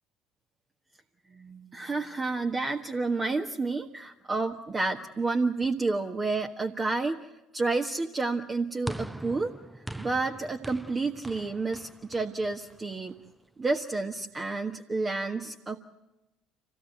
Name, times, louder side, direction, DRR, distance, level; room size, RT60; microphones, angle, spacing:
voice 1, 1.3-7.2 7.5-9.5 10.0-13.1 13.6-15.8, right 3 dB, 30° right, 2 dB, 1.4 m, -30 dB
sound 1, 8.9-13.3, right 1 dB, 5° right, 0.7 m, -42 dB
26.5 x 17.0 x 7.9 m, 0.97 s
hypercardioid pair, 60°, 0 cm